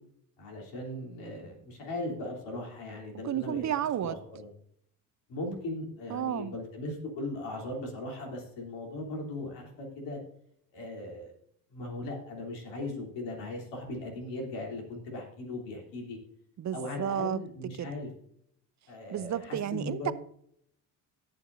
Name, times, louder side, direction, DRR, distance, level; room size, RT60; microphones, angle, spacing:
voice 1, 0.4-3.6 4.0-4.5 5.3-10.2 10.7-11.3 11.7-16.2 16.7-18.1 18.9-20.1, left 2 dB, 75° left, 3.5 m, -38 dB
voice 2, 3.2-4.2 6.1-6.5 16.6-17.4 17.8-17.9 19.1-20.1, right 10 dB, 40° right, 0.7 m, -31 dB
18.0 x 6.9 x 2.7 m
supercardioid pair, 70°, 43 cm